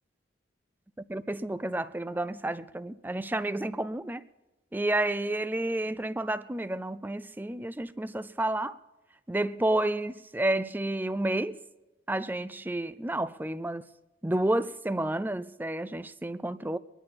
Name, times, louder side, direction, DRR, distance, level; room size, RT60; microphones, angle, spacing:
voice 1, 1.1-4.2 4.7-8.8 9.3-11.6 12.1-13.9 14.2-16.8, right 1 dB, 10° right, 0.4 m, -30 dB
24.0 x 11.0 x 4.3 m
head